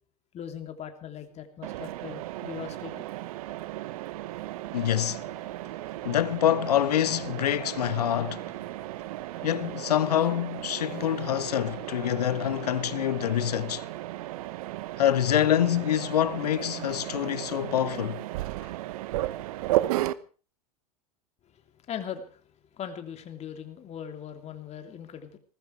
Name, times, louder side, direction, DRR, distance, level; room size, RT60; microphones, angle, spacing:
voice 1, 0.3-3.0 21.5-22.4 22.7-25.4, left 8 dB, 35° left, 3.2 m, -40 dB
Mechanisms, 1.6-20.1, right 16 dB, 65° right, 1.0 m, -35 dB
voice 2, 4.7-5.2 6.0-8.5 9.4-13.9 15.0-18.2, left 11 dB, 80° left, 0.9 m, -26 dB
20.0 x 14.0 x 4.7 m
hypercardioid pair, 95°, 20 cm